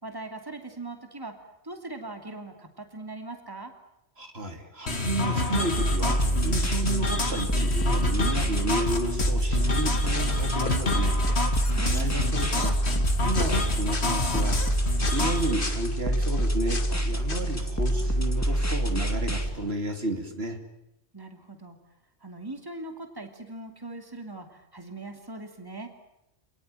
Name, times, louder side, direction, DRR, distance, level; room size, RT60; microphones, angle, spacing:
voice 1, 0.0-1.3 1.6-3.7 11.8-12.3 21.1-21.8 22.2-25.9, right 2 dB, 20° right, 5 dB, 2.7 m, -40 dB
voice 2, 4.2-12.9 13.2-20.6, right 1 dB, 60° right, 5 dB, 3.1 m, -32 dB
sound 1, 4.9-15.5, left 2 dB, 65° left, 2.7 m, -29 dB
sound 2, 5.8-19.5, right 1 dB, 15° left, 2.4 m, -27 dB
sound 3, 9.2-19.7, left 3 dB, 50° left, 2.0 m, -39 dB
27.0 x 19.5 x 9.1 m, 0.85 s
omnidirectional pair, 1.2 m